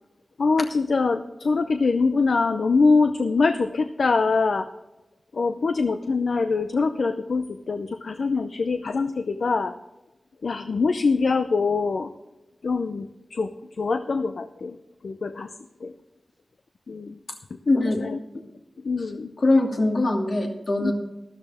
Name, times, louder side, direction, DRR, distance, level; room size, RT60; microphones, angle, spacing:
voice 1, 0.4-4.7 5.3-9.7 10.4-12.1 12.6-13.5 13.8-14.8 15.0-15.5 15.8-15.9 16.9-17.2 17.7-18.2 18.8-19.3 20.8-20.9, left 4 dB, 75° left, 9 dB, 0.6 m, -23 dB
voice 2, 17.7-18.0 19.4-20.9, left 2 dB, 60° left, 1 dB, 2.6 m, -22 dB
13.0 x 13.0 x 3.6 m, 1.0 s
wide cardioid pair, 90°, 0 cm